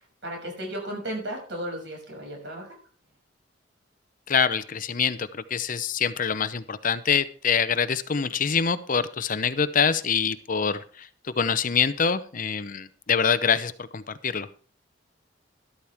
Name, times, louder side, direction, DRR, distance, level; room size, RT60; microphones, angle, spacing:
voice 1, 0.0-2.7, right 1 dB, 65° right, 1 dB, 6.6 m, -35 dB
voice 2, 4.3-14.5, left 6 dB, 45° left, 13 dB, 0.7 m, -25 dB
13.0 x 12.5 x 3.6 m, 0.41 s
head